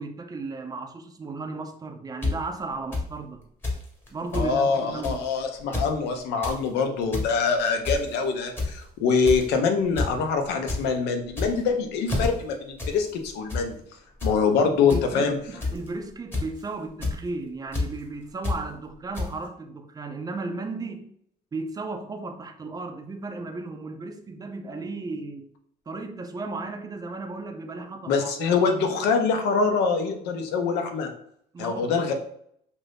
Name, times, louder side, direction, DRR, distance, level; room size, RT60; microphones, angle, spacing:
voice 1, 0.0-3.5 4.1-5.2 14.6-21.1 21.5-25.5 25.9-28.6 31.5-32.1, right 3 dB, 20° right, 0.4 m, -35 dB
sound 1, 2.2-2.3 2.9-3.0 3.6-3.8 4.1-4.5 5.0-5.2 5.6-5.9 6.2-6.6 7.0-7.3 7.8-8.1 8.6-8.8 9.2-9.5 10.0-10.1 10.4-10.8 11.3-11.7 12.1-12.3 12.8-12.9 13.2-13.6 14.2-14.3 14.9-15.0 15.6-15.9 16.3-16.6 17.0-17.2 17.7-17.8 18.4-18.6 19.1-19.3, left 3 dB, 15° left, 1.0 m, -27 dB
voice 2, 4.3-13.8 14.2-15.4 28.1-31.1 31.6-32.1, left 5 dB, 85° left, 0.6 m, -24 dB
2.7 x 2.5 x 3.3 m
cardioid pair, 110°, 17 cm